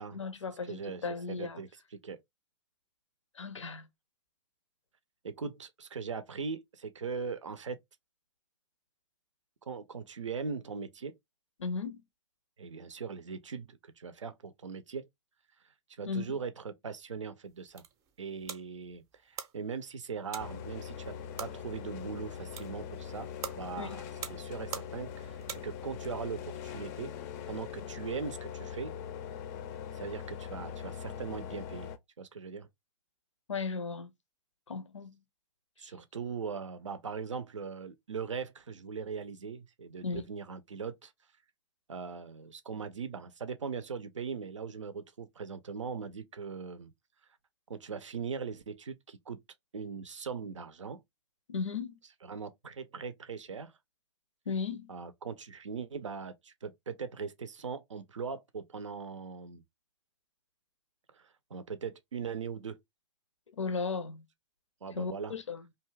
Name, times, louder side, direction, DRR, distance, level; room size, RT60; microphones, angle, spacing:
voice 1, 0.0-1.6 3.3-3.9 11.6-12.0 16.0-16.3 23.8-24.0 33.5-34.1 34.7-35.2 40.0-40.2 51.5-52.0 54.5-54.9 63.5-64.2 64.9-65.6, left 5 dB, 85° left, 0.5 m, -36 dB
voice 2, 0.7-1.7 2.0-2.2 5.2-7.8 9.7-11.1 12.6-15.1 15.9-17.8 18.2-24.0 24.3-27.1 27.5-28.9 29.9-31.9 32.2-32.7 35.8-41.1 41.9-46.9 47.7-49.4 49.7-51.0 52.2-53.8 54.9-59.6 61.1-62.8 64.8-65.3, right 5 dB, 85° right, 0.5 m, -40 dB
sound 1, 17.4-26.1, right 7 dB, 20° right, 0.5 m, -46 dB
sound 2, 20.4-32.0, left 8 dB, 35° left, 0.4 m, -42 dB
2.6 x 2.3 x 3.1 m
hypercardioid pair, 115°, 15 cm